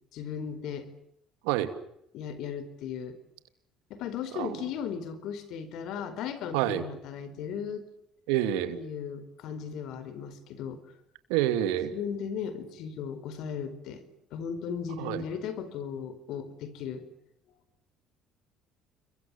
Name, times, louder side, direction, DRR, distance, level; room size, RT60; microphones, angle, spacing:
voice 1, 0.1-0.9 2.1-3.2 3.9-7.8 8.7-11.0 11.8-14.0 14.3-17.0, left 7 dB, 70° left, 13 dB, 4.6 m, -36 dB
voice 2, 8.3-8.8 11.3-12.0 15.0-15.2, right 12 dB, 90° right, 11 dB, 2.8 m, -27 dB
29.5 x 23.0 x 7.4 m, 0.76 s
supercardioid pair, 85°, 0 cm